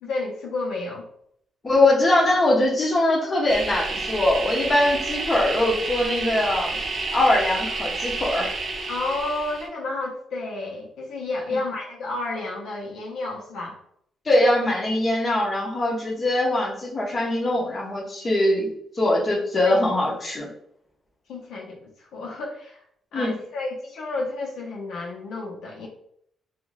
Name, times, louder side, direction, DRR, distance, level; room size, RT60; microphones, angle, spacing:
voice 1, 0.0-1.1 8.9-13.8 19.6-19.8 21.3-22.8 23.1-25.9, left 2 dB, 80° left, -1 dB, 0.8 m, -31 dB
voice 2, 1.6-6.8 7.1-8.5 14.3-20.5 23.1-23.3, left 1 dB, 25° left, -3 dB, 0.6 m, -22 dB
sound 1, 3.5-9.7, right 3 dB, 50° right, 0.5 m, -30 dB
2.4 x 2.4 x 3.1 m, 0.69 s
cardioid pair, 170°, 0 cm